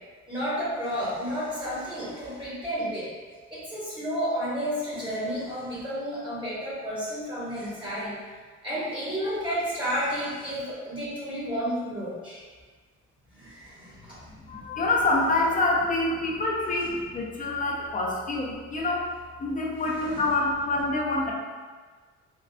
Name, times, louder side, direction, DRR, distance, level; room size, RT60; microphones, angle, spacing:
voice 1, 0.3-3.1 3.5-8.2 8.6-12.4 13.3-14.2 20.1-20.2, equal, 15° right, -9 dB, 1.1 m, -31 dB
voice 2, 14.5-19.1 19.4-21.3, left 2 dB, 25° left, -3 dB, 0.6 m, -26 dB
3.7 x 2.3 x 2.3 m, 1.4 s
cardioid pair, 90°, 30 cm